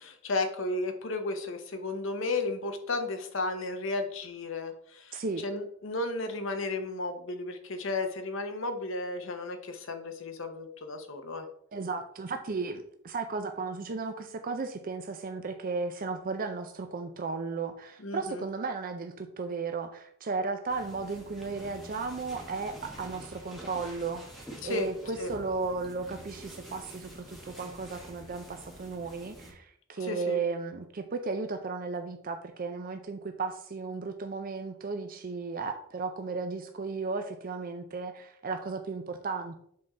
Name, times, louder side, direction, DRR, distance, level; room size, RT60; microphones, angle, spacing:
voice 1, 0.0-11.5 18.0-18.4 24.6-24.9 25.2-25.3 30.0-30.4, left 2 dB, 65° left, 6 dB, 0.9 m, -33 dB
voice 2, 5.1-5.4 11.7-39.6, right 4 dB, 45° right, 6 dB, 0.5 m, -35 dB
sound 1, 20.7-29.5, equal, ahead, 1.3 m, -47 dB
7.5 x 3.8 x 4.3 m, 0.69 s
head